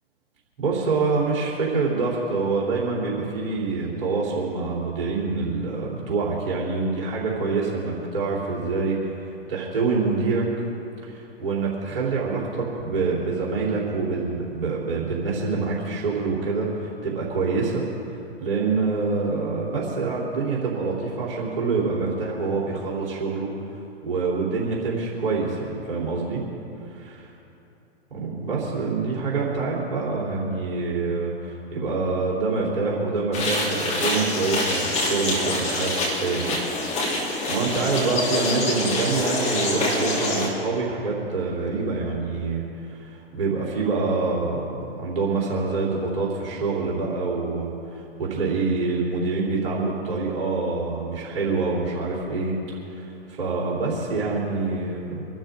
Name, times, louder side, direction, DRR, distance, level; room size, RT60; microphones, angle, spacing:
voice 1, 0.6-10.7 11.0-17.8 18.1-23.5 24.0-26.4 26.9-27.3 28.1-36.6 37.1-52.6 52.9-55.3, right 4 dB, 60° right, -4 dB, 3.6 m, -26 dB
sound 1, 33.3-40.5, left 2 dB, 20° left, 3.1 m, -25 dB
25.5 x 12.5 x 3.7 m, 2.8 s
figure-of-eight pair, 110°, 32 cm